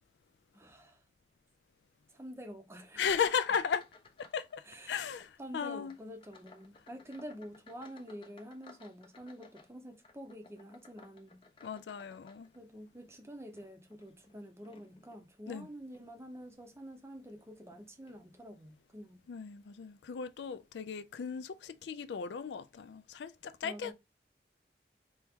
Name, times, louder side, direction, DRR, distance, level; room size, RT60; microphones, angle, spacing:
voice 1, 0.5-1.0 2.1-3.0 4.7-5.1 5.4-11.4 12.5-19.3 23.6-23.9, equal, 15° right, 0.6 m, -48 dB
voice 2, 3.0-3.9 4.2-6.0 11.6-12.5 15.5-15.7 19.3-23.9, left 6 dB, 75° left, 0.4 m, -36 dB
sound 1, 3.4-4.5 4.8-5.4 5.8-12.9 13.4-15.3 15.9-16.1 16.7-16.8 17.7-17.8 18.1-18.2, left 3 dB, 30° left, 0.5 m, -60 dB
4.5 x 2.8 x 3.5 m
head